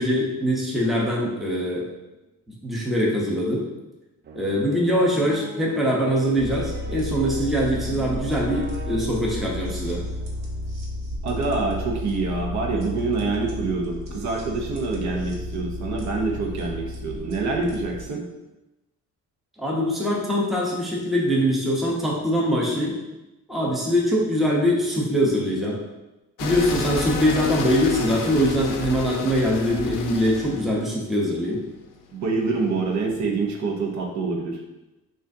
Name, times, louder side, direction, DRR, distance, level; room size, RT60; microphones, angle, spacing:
voice 1, 0.0-1.8 2.5-3.6 4.3-10.0 19.6-22.9 23.5-25.8 26.4-31.6, equal, ahead, -4 dB, 0.7 m, -23 dB
sound 1, 4.2-11.2, right 1 dB, 35° right, 0.4 m, -41 dB
sound 2, 6.4-18.1, left 1 dB, 85° right, 0.9 m, -33 dB
voice 2, 11.2-18.2 30.5-30.6 32.1-34.6, right 3 dB, 60° right, 1 dB, 0.8 m, -26 dB
sound 3, 26.4-33.1, left 5 dB, 90° left, 0.5 m, -31 dB
6.2 x 2.5 x 2.6 m, 1.0 s
cardioid pair, 150°, 32 cm